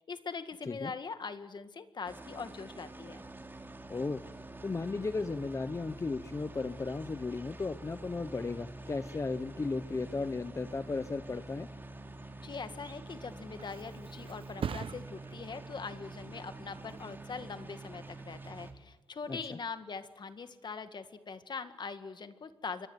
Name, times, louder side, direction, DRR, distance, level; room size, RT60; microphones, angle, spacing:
voice 1, 0.1-3.2 12.4-22.9, left 5 dB, 55° left, 9 dB, 1.9 m, -42 dB
sound 1, 2.1-18.7, right 2 dB, 25° right, 2.8 m, -47 dB
voice 2, 3.9-4.2 4.6-11.7 19.3-19.6, left 3 dB, 35° left, 11 dB, 0.8 m, -35 dB
Thump thud, 13.0-20.5 20.9-21.3, right 7 dB, 75° right, 1.0 m, -46 dB
27.5 x 23.0 x 8.1 m, 1.0 s
wide cardioid pair, 115°, 9 cm